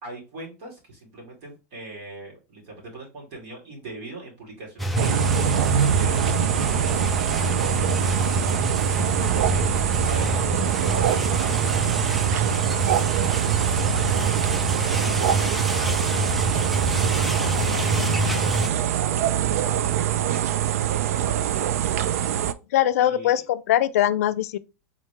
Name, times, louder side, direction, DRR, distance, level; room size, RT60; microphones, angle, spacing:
voice 1, 0.0-7.5 7.9-8.3 8.8-9.6 10.0-10.3 10.8-14.3 14.8-16.3 16.8-18.2 18.6-22.1 23.0-23.4, right 2 dB, 45° right, 2.3 m, -40 dB
sound 1, 4.8-18.7, right 1 dB, ahead, 0.3 m, -27 dB
sound 2, 5.0-22.5, right 10 dB, 75° right, 0.4 m, -24 dB
voice 2, 22.7-24.6, left 12 dB, 75° left, 0.4 m, -22 dB
3.8 x 3.1 x 3.3 m
supercardioid pair, 160°, 8 cm